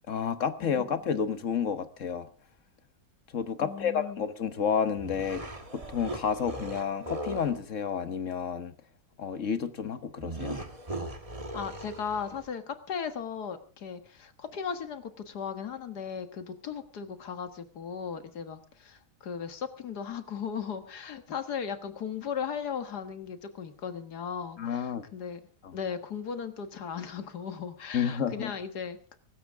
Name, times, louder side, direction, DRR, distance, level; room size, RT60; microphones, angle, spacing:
voice 1, 0.1-2.3 3.3-8.7 9.2-10.6 24.6-25.1 25.6-25.7 27.9-28.5, left 7 dB, 55° left, 1.5 m, -30 dB
voice 2, 3.6-4.2 11.5-29.1, left 7 dB, 90° left, 2.0 m, -37 dB
sound 1, 5.0-7.6 10.2-12.5, right 1 dB, 25° right, 1.4 m, -39 dB
23.5 x 13.0 x 3.5 m
omnidirectional pair, 1.7 m